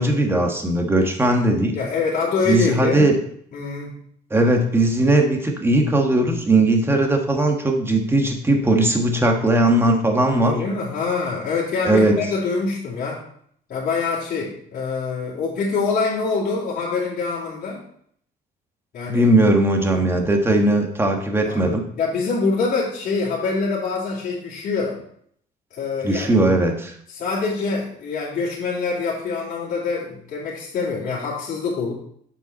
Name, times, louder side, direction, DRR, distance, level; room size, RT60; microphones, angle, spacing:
voice 1, 0.0-1.8 2.5-3.2 4.3-10.5 11.8-12.1 19.1-21.8 26.0-26.9, right 1 dB, 15° right, 3 dB, 1.4 m, -18 dB
voice 2, 1.7-3.1 3.5-4.0 10.4-13.2 13.7-17.8 18.9-19.3 19.9-20.0 21.4-25.0 25.7-26.3 27.1-31.9, left 4 dB, 55° left, -7 dB, 2.6 m, -25 dB
7.1 x 5.8 x 4.1 m, 0.65 s
cardioid pair, 110°, 17 cm